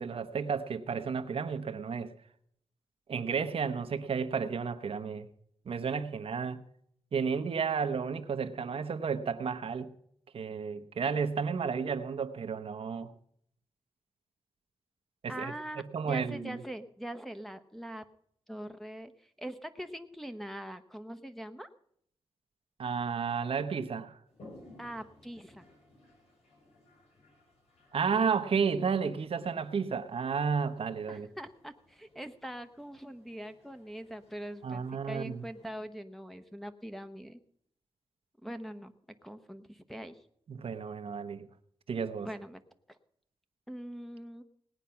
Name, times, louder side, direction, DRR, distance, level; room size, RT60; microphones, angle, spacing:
voice 1, 0.0-2.1 3.1-5.3 5.7-6.6 7.1-9.9 10.3-13.1 15.2-16.6 22.8-24.2 27.9-31.3 34.6-35.4 40.5-41.5 41.9-42.3, right 6 dB, 65° right, 0.9 m, -32 dB
voice 2, 15.3-18.0 18.5-21.7 24.8-25.7 31.1-37.4 38.4-38.9 39.2-40.2 42.2-42.6 42.9-43.0 43.7-44.4, right 1 dB, ahead, 1.0 m, -43 dB
Toilet flush, 24.3-35.8, left 1 dB, 85° left, 5.3 m, -59 dB
18.5 x 9.0 x 5.8 m
cardioid pair, 75°, 10 cm